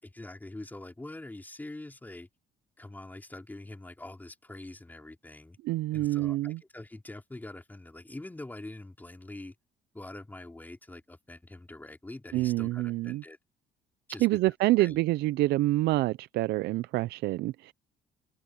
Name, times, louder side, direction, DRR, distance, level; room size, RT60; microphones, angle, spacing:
voice 1, 0.0-2.3 2.8-5.6 5.9-9.5 9.9-13.4 14.1-14.4 14.8-15.0, left 2 dB, 10° left, 4.4 m, -44 dB
voice 2, 5.6-6.6 12.3-13.2 14.2-17.7, right 17 dB, 80° right, 0.5 m, -27 dB
cardioid pair, 110°, 17 cm